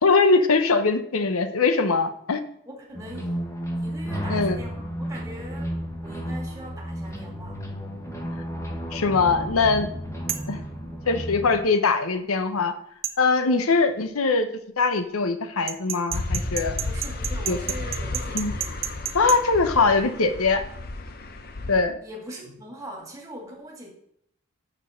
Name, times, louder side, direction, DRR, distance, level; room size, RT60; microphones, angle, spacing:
voice 1, 0.0-2.4 4.3-4.6 8.9-9.9 10.5-10.6 11.1-12.7 13.2-14.5 14.8-16.8 17.5-17.6 18.3-18.5 19.1-20.6 21.7-22.0, left 4 dB, 85° left, 9 dB, 0.8 m, -21 dB
voice 2, 2.7-3.4 3.7-5.7 6.0-7.6 16.8-18.7 22.0-23.9, right 1 dB, 15° right, -1 dB, 2.0 m, -41 dB
sound 1, 2.9-11.6, equal, 15° left, 1.3 m, -32 dB
sound 2, 10.3-10.5 13.0-13.2 15.7-19.4, right 11 dB, 45° right, 0.7 m, -30 dB
sound 3, 16.1-21.8, left 2 dB, 45° left, 0.7 m, -32 dB
6.8 x 6.2 x 6.3 m, 0.70 s
head